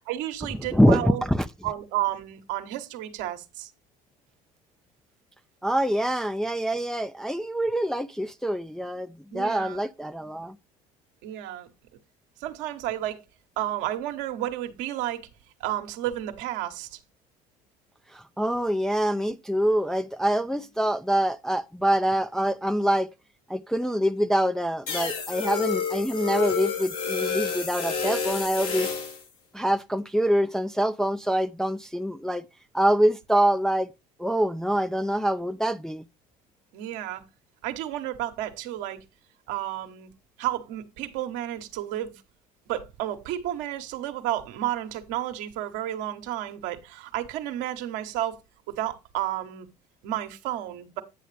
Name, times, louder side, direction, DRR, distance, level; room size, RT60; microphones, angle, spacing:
voice 1, 0.1-1.2 1.6-3.7 9.3-9.8 11.2-11.7 12.4-13.2 13.6-15.3 15.6-17.0 36.7-37.2 37.6-39.0 39.5-40.1 40.4-42.2 42.7-48.4 48.7-49.7 50.0-51.0, right 13 dB, 70° right, 1.1 m, -31 dB
voice 2, 0.7-1.5 5.6-10.6 18.1-23.1 23.5-28.9 29.5-32.4 32.7-33.9 34.2-36.1, equal, 5° left, 0.4 m, -25 dB
sound 1, 24.9-29.2, left 6 dB, 80° left, 2.1 m, -29 dB
9.3 x 6.5 x 3.3 m
hypercardioid pair, 75°, 19 cm